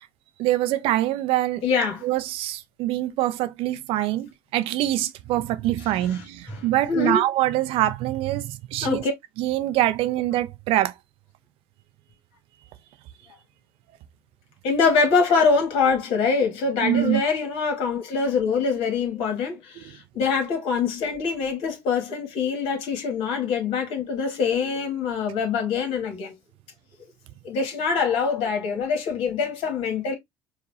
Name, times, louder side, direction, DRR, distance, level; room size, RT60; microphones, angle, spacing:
voice 1, 0.4-1.6 2.0-9.0 9.4-10.9 16.8-17.2, right 14 dB, 65° right, 0.5 m, -24 dB
voice 2, 1.6-2.0 5.8-7.2 8.8-9.1 14.6-26.3 27.4-30.2, left 5 dB, 70° left, 1.8 m, -24 dB
4.8 x 2.5 x 3.2 m
hypercardioid pair, 65°, 10 cm